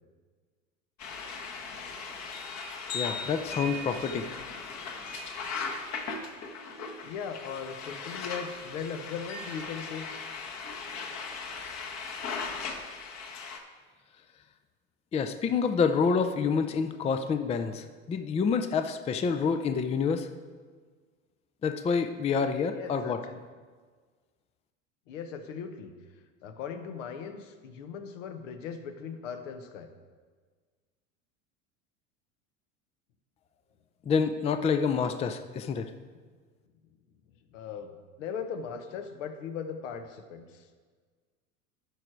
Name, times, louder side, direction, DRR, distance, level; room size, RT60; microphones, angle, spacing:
sound 1, 1.0-13.6, left 4 dB, 45° left, 1.3 m, -38 dB
voice 1, 2.9-4.3 15.1-20.3 21.6-23.2 34.1-35.9, left 5 dB, 15° left, 8 dB, 0.4 m, -27 dB
voice 2, 7.0-10.1 22.6-23.4 25.1-25.9 26.4-29.9 37.5-37.9 38.2-40.7, left 6 dB, 70° left, 8 dB, 1.1 m, -38 dB
12.5 x 4.9 x 4.6 m, 1.5 s
hypercardioid pair, 85°, 39 cm